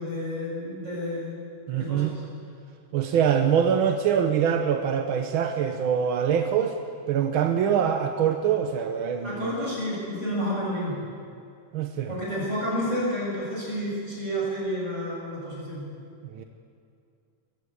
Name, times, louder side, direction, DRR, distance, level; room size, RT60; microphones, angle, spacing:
voice 1, 0.0-1.4 1.7-2.2 9.2-11.0 12.1-15.8, equal, 20° right, -5 dB, 8.1 m, -30 dB
voice 2, 1.7-2.2 2.9-6.7 7.1-9.5 11.7-12.1 16.3-16.4, right 8 dB, 65° right, 5 dB, 1.3 m, -24 dB
21.0 x 15.0 x 8.7 m, 2.4 s
omnidirectional pair, 3.5 m